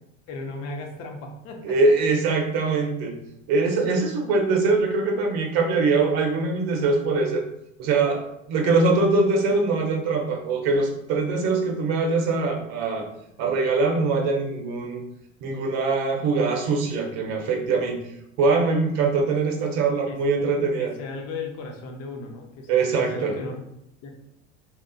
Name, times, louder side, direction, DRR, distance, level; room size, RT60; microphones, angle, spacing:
voice 1, 0.3-1.7 19.6-19.7 20.1-23.6 24.0-24.1, left 3 dB, 45° left, 3 dB, 0.6 m, -36 dB
voice 2, 1.6-3.1 3.5-7.4 7.8-8.2 8.5-13.1 13.4-15.0 15.4-18.0 18.4-20.9 22.7-23.3, right 3 dB, 45° right, 2 dB, 0.7 m, -22 dB
2.8 x 2.4 x 2.2 m, 0.80 s
hypercardioid pair, 80°, 36 cm